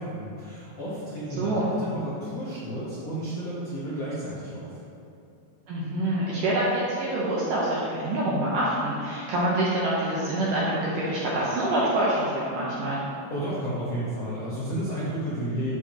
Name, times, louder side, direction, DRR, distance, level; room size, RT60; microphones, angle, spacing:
voice 1, 0.0-4.8 13.3-15.7, right 1 dB, 70° left, -9 dB, 1.5 m, -32 dB
voice 2, 1.4-1.7 5.7-13.0, right 1 dB, 75° right, -6 dB, 2.0 m, -26 dB
13.0 x 4.8 x 2.9 m, 2.7 s
omnidirectional pair, 4.9 m